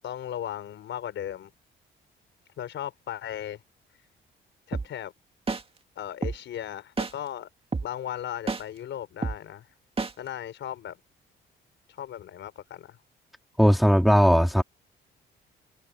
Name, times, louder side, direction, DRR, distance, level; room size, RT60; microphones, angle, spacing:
voice 1, 0.0-1.5 2.6-3.6 4.7-5.1 6.0-7.5 7.8-9.7 10.2-11.0 11.9-13.0, left 11 dB, 70° left, 5.5 m, -36 dB
sound 1, 4.7-4.9 5.5-5.6 6.2-6.4 7.0-7.1 7.7-7.9 8.5-8.6 9.2-9.4 10.0-10.1, right 4 dB, 30° right, 2.2 m, -28 dB
voice 2, 13.6-14.6, equal, ahead, 3.2 m, -18 dB
cardioid pair, 90°, 20 cm